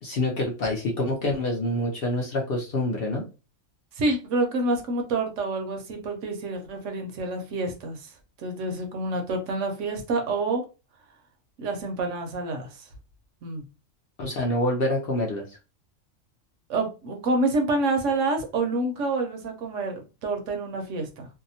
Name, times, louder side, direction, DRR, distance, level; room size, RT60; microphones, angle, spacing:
voice 1, 0.0-3.3 14.2-15.6, left 1 dB, 60° left, 0.7 m, -26 dB
voice 2, 4.0-8.1 8.4-10.6 11.6-12.9 13.4-13.6 16.7-21.3, right 2 dB, 70° right, 0.9 m, -28 dB
2.7 x 2.1 x 2.6 m
omnidirectional pair, 1.4 m